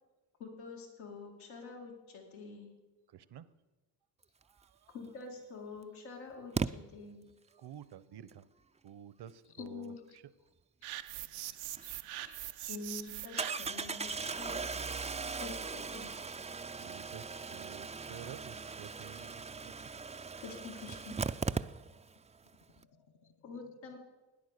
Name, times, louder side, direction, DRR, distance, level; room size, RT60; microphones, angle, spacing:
voice 1, 0.4-2.7 4.9-7.2 9.6-10.0 12.7-14.6 15.4-16.1 20.4-21.2 23.4-24.0, left 4 dB, 85° left, 2.6 m, -46 dB
voice 2, 3.1-3.5 4.4-4.9 7.6-8.4 8.8-10.2 16.8-19.7, right 10 dB, 55° right, 0.9 m, -51 dB
Engine starting, 5.1-5.2 6.6-6.7 11.8-11.9 12.2-12.3 13.4-22.2 22.5-22.6 22.8-22.9, right 4 dB, 15° right, 0.4 m, -38 dB
sound 1, 10.8-13.9, right 14 dB, 85° right, 0.7 m, -43 dB
voice 3, 11.8-12.8 19.2-19.3 22.7-23.6, left 7 dB, 55° left, 1.1 m, -63 dB
14.0 x 10.0 x 6.7 m
supercardioid pair, 65°, 47 cm